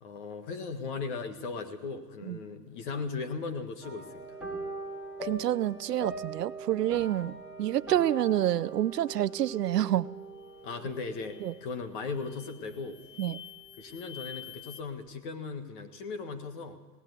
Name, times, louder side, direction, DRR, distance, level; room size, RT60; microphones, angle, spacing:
voice 1, 0.0-4.4 10.6-13.0 13.8-16.8, left 4 dB, 30° left, 7 dB, 1.7 m, -37 dB
sound 1, 3.8-13.4 13.7-14.0 14.4-14.5, right 2 dB, ahead, 2.6 m, -42 dB
voice 2, 5.2-7.3 7.6-10.1 11.4-11.5 13.2-13.4, right 12 dB, 70° right, 18 dB, 0.7 m, -28 dB
sound 2, 10.4-10.7 11.1-11.7 12.2-14.8, left 10 dB, 45° left, 0.7 m, -48 dB
18.0 x 17.5 x 8.3 m, 1.2 s
hypercardioid pair, 155°, 50 cm